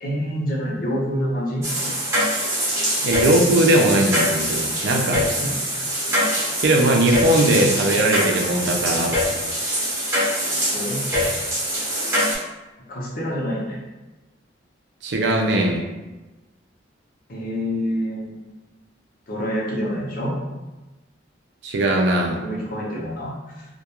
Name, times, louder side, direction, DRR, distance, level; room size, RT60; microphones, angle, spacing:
voice 1, 0.0-1.6 5.4-5.5 10.7-11.0 12.9-13.8 17.3-18.4 19.3-20.4 22.4-23.7, equal, 50° left, -4 dB, 0.7 m, -27 dB
sound 1, 1.6-12.3, equal, 15° right, 0.7 m, -23 dB
voice 2, 3.0-5.3 6.6-9.2 15.0-15.8 21.6-22.4, right 1 dB, 65° right, 2 dB, 0.4 m, -19 dB
2.3 x 2.2 x 2.9 m, 1.1 s
head